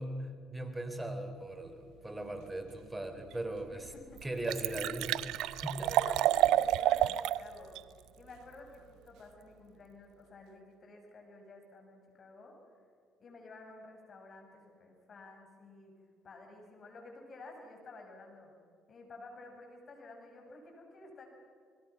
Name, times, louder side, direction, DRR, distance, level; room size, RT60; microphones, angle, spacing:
voice 1, 0.0-3.9 4.2-5.9, right 1 dB, 15° right, 7 dB, 4.0 m, -39 dB
Liquid, 3.3-3.4 3.9-4.0 4.2-7.4 7.8-7.9, right 13 dB, 75° right, 0.6 m, -29 dB
voice 2, 3.7-4.2 5.6-12.6 13.2-15.9 16.2-18.5 18.9-21.3, left 2 dB, 45° left, 3 dB, 7.2 m, -52 dB
29.0 x 21.0 x 6.1 m, 2.2 s
supercardioid pair, 65°, 0 cm